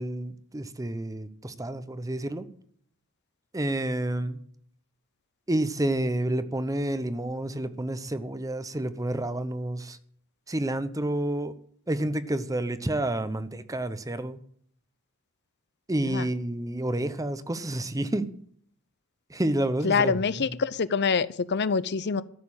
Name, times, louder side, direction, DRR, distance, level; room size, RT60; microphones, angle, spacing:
voice 1, 0.0-2.4 3.5-4.4 5.5-10.0 10.5-11.5 11.9-14.4 15.9-18.3 19.3-20.5, right 1 dB, 15° right, 13 dB, 0.8 m, -29 dB
voice 2, 19.8-22.2, left 5 dB, 50° left, 17 dB, 0.6 m, -25 dB
14.0 x 6.9 x 8.7 m, 0.62 s
head